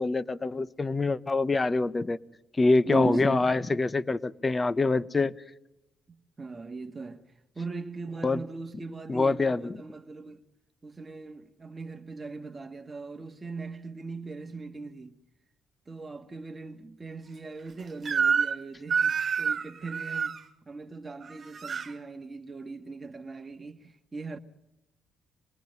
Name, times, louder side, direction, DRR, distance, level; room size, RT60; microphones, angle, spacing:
voice 1, 0.0-2.2 2.6-5.3 8.2-8.4 9.1-9.8, left 3 dB, 25° left, 0.8 m, -25 dB
voice 2, 2.8-3.6 6.4-7.2 7.5-10.4 10.8-15.2 15.9-20.4 20.7-24.4, right 3 dB, 25° right, 1.5 m, -39 dB
Crying sobbing / Screech, 18.1-18.6 18.9-20.4 21.2-21.9, right 6 dB, 45° right, 1.9 m, -27 dB
26.0 x 19.5 x 5.3 m
cardioid pair, 90°, 0 cm